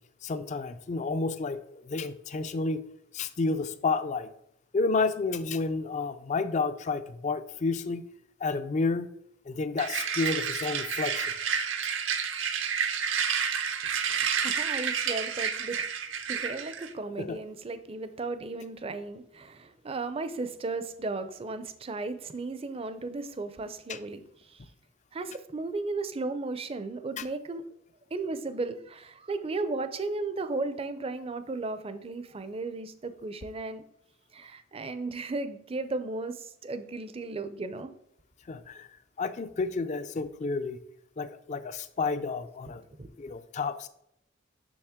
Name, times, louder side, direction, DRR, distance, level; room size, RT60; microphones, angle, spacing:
voice 1, 0.2-2.8 3.1-4.3 4.7-8.0 8.4-9.1 9.5-11.3 17.2-17.4 23.9-24.0 27.2-27.3 38.5-38.9 39.2-40.8 41.2-42.8 43.2-43.9, left 3 dB, 40° left, 12 dB, 0.4 m, -30 dB
sound 1, 9.8-16.9, right 7 dB, 75° right, 0.7 m, -30 dB
voice 2, 14.0-15.8 16.3-24.2 25.1-27.6 28.1-33.8 34.3-37.9 43.0-43.1, right 3 dB, 30° right, 11 dB, 0.5 m, -35 dB
7.0 x 6.2 x 3.6 m, 0.76 s
head